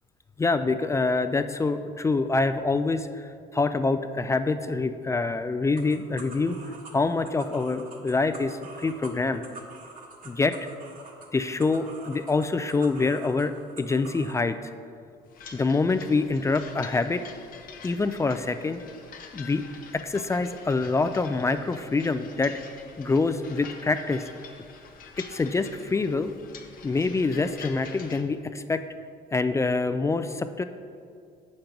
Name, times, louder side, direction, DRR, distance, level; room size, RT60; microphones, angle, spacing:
voice 1, 0.4-6.6 6.9-9.4 10.3-10.5 11.3-13.5 13.8-14.6 15.5-17.2 17.8-18.8 19.3-19.6 19.9-22.5 23.0-24.2 25.2-26.3 26.8-28.8 29.3-30.6, left 3 dB, 15° left, 10 dB, 0.3 m, -25 dB
sound 1, 5.8-14.4, right 3 dB, 55° right, 1.3 m, -46 dB
sound 2, 15.3-28.2, left 6 dB, 55° left, 0.8 m, -46 dB
7.5 x 5.3 x 5.8 m, 2.3 s
cardioid pair, 110°, 17 cm